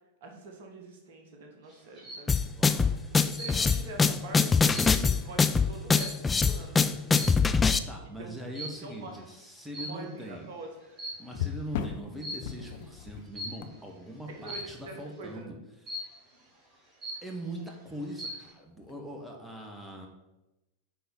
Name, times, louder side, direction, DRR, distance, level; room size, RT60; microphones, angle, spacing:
voice 1, 0.2-2.3 3.2-4.7 5.0-7.1 8.0-8.4 8.8-9.2 9.8-10.9 14.3-15.5, right 2 dB, 55° right, 3 dB, 1.6 m, -45 dB
sound 1, 1.7-2.3 3.4-3.9 4.3-6.5 7.1-7.5 8.5-8.9 9.7-10.3 10.8-11.5 12.2-12.6 13.3-13.7 14.5-14.9 15.9-16.3 16.7-16.8 17.0-17.6 18.0-18.5, equal, 25° right, 2.7 m, -40 dB
sound 2, 2.3-2.6 4.1-4.3 4.9-5.0 7.2-8.0 8.6-8.8 11.3-14.9 18.8-19.0, left 9 dB, 55° left, 0.8 m, -39 dB
sound 3, 2.3-7.8, left 5 dB, 15° left, 0.5 m, -23 dB
voice 2, 2.6-2.9 7.9-10.5 11.2-15.6 17.2-20.1, right 1 dB, 5° right, 1 dB, 1.6 m, -41 dB
10.5 x 4.3 x 5.5 m, 0.97 s
figure-of-eight pair, 90°, 0 cm